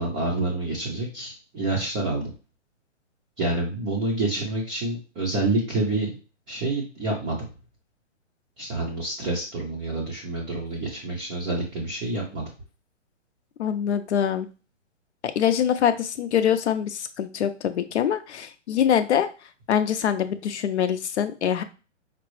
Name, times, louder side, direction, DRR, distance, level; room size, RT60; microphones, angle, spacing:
voice 1, 0.0-2.3 3.4-6.2 6.5-7.5 8.6-12.4, right 2 dB, 15° right, -6 dB, 0.5 m, -28 dB
voice 2, 13.6-14.5 15.4-19.3 19.7-21.6, left 9 dB, 65° left, 10 dB, 0.6 m, -24 dB
5.1 x 2.0 x 3.0 m, 0.33 s
hypercardioid pair, 135°, 37 cm